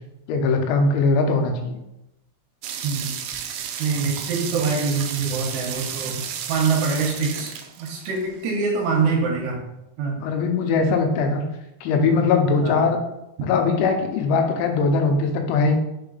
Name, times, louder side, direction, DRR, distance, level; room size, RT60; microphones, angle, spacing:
voice 1, 0.3-1.8 10.2-11.4 11.8-13.0 13.4-15.7, left 4 dB, 85° left, 4 dB, 3.2 m, -20 dB
sound 1, 2.6-8.5, right 8 dB, 90° right, 2.4 m, -32 dB
voice 2, 3.8-6.2 6.5-7.5 7.8-9.6 10.0-10.2 12.6-12.8, right 4 dB, 75° right, -1 dB, 2.9 m, -24 dB
6.6 x 3.8 x 3.9 m, 0.90 s
omnidirectional pair, 5.4 m